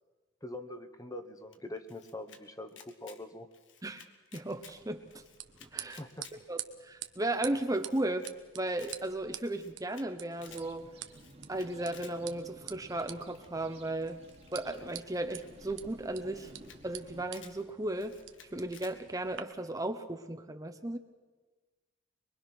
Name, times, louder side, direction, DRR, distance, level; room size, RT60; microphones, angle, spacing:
voice 1, 0.4-3.5 6.0-6.3, left 1 dB, 20° left, 8 dB, 1.2 m, -43 dB
Camera, 1.5-2.4 2.7-3.2 3.5-4.8 5.1-6.4 6.7-6.8 7.0-7.1 7.3-7.4 7.7-8.3 8.6-9.0 9.4-10.1 10.3-10.6 11.1-12.1 13.3-13.6 14.2-15.5 16.0-16.1 16.3-16.8 17.1-17.6 18.0-18.9, left 7 dB, 90° left, 1.8 m, -55 dB
voice 2, 4.3-5.2 5.6-6.0 6.5-8.3 8.5-10.9 11.5-14.2 14.5-16.5 16.8-18.1 18.5-21.0, right 1 dB, 20° right, 7 dB, 0.9 m, -35 dB
sound 1, 4.6-19.4, right 12 dB, 85° right, 1.2 m, -48 dB
sound 2, 10.4-17.3, right 1 dB, 35° right, 1.9 m, -54 dB
23.5 x 23.0 x 6.1 m, 1.3 s
head